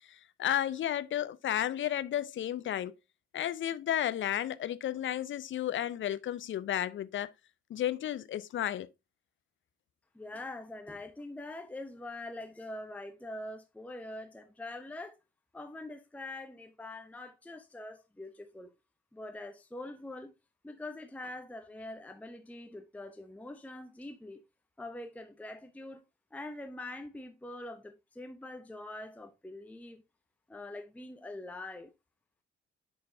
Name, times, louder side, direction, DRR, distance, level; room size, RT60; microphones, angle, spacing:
voice 1, 0.1-2.9 3.3-7.3 7.7-8.9, left 11 dB, 40° left, 0.6 m, -33 dB
voice 2, 10.1-15.2 15.5-18.7 19.1-20.3 20.6-24.4 24.8-26.0 26.3-30.0 30.5-31.9, left 2 dB, 5° left, 0.8 m, -44 dB
10.5 x 3.8 x 2.8 m
figure-of-eight pair, 40°, 30 cm